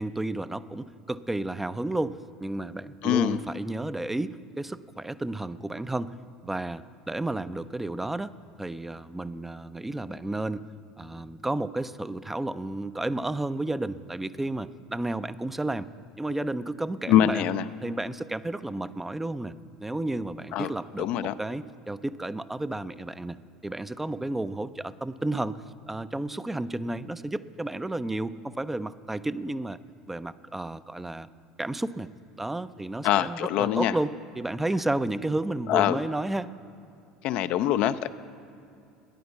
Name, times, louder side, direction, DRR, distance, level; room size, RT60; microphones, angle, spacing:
voice 1, 0.0-6.1 6.4-8.3 8.6-10.7 11.0-15.9 16.2-17.5 17.8-19.6 19.8-29.8 30.1-31.3 31.6-32.1 32.4-36.5, right 2 dB, 10° right, 13 dB, 0.5 m, -32 dB
voice 2, 3.0-3.4 17.1-17.6 20.5-20.7 21.0-21.3 33.0-33.9 35.7-36.0 37.2-38.1, left 11 dB, 55° left, 12 dB, 0.4 m, -24 dB
14.0 x 10.0 x 6.9 m, 2.6 s
figure-of-eight pair, 70°, 2 cm